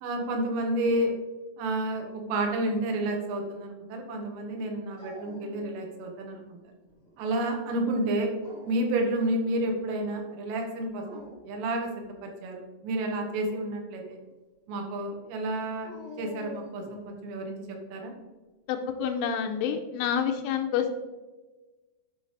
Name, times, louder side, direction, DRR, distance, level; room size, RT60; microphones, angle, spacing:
voice 1, 0.0-1.1 1.6-6.6 7.2-8.3 8.6-14.2 14.7-15.9 16.2-18.2, right 1 dB, 80° right, 2 dB, 3.7 m, -30 dB
Dog, 5.0-6.1 6.5-7.2 8.2-9.0 10.9-11.6 15.8-17.1, left 2 dB, 30° left, 1.0 m, -47 dB
voice 2, 18.7-21.0, left 7 dB, 80° left, 5 dB, 2.9 m, -28 dB
11.5 x 5.5 x 3.2 m, 1.2 s
omnidirectional pair, 5.7 m